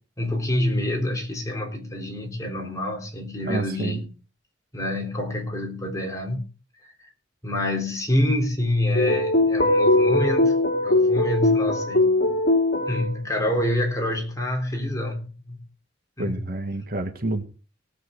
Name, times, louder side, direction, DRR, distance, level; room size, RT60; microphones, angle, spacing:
voice 1, 0.2-4.1 4.7-6.4 6.8-7.1 7.4-12.2 12.9-15.6 16.2-16.3, left 1 dB, 15° left, 3.5 m, -27 dB
voice 2, 3.4-4.0 16.2-17.4, right 2 dB, 50° right, 1.9 m, -28 dB
sound 1, 8.9-13.1, left 2 dB, 55° left, 3.0 m, -20 dB
19.0 x 8.0 x 4.7 m
head